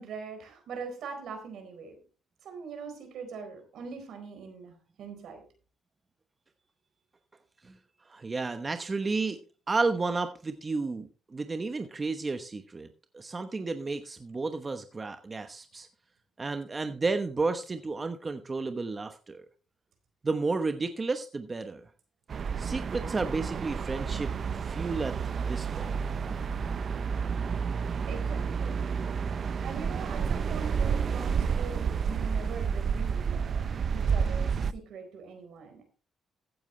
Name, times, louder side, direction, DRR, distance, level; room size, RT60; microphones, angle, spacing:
voice 1, 0.0-2.0 2.4-5.4 28.1-28.8 29.6-35.9, right 5 dB, 75° right, 6 dB, 4.3 m, -42 dB
voice 2, 8.0-9.4 9.7-12.9 13.1-15.9 16.4-19.4 20.2-21.9 22.6-26.0, right 3 dB, 30° right, 8 dB, 1.0 m, -32 dB
sound 1, 22.3-34.7, right 6 dB, 50° right, 0.6 m, -30 dB
15.0 x 9.2 x 3.2 m, 0.37 s
cardioid pair, 90°, 0 cm